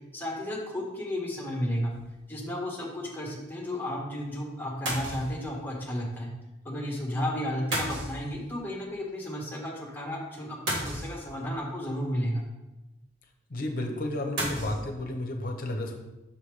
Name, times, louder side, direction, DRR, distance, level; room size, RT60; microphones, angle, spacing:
voice 1, 0.1-1.9 2.3-6.3 6.6-12.4, equal, 10° left, -2 dB, 1.2 m, -33 dB
sound 1, 1.9-2.2 4.9-5.5 7.7-8.6 10.7-11.6 14.4-14.8, right 1 dB, 70° right, 1.7 m, -33 dB
voice 2, 13.5-16.0, left 1 dB, 50° left, 3 dB, 0.9 m, -32 dB
5.9 x 5.4 x 3.2 m, 0.99 s
head